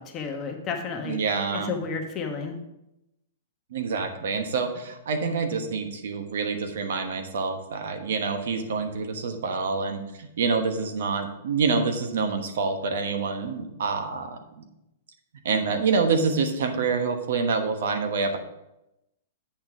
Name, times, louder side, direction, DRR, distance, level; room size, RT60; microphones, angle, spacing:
voice 1, 0.0-1.2 1.5-2.6, left 5 dB, 25° left, 3 dB, 1.2 m, -32 dB
voice 2, 1.1-1.7 3.7-14.6 15.4-18.4, right 4 dB, 70° right, 6 dB, 1.2 m, -27 dB
8.6 x 4.3 x 6.0 m, 0.89 s
hypercardioid pair, 150°, 0 cm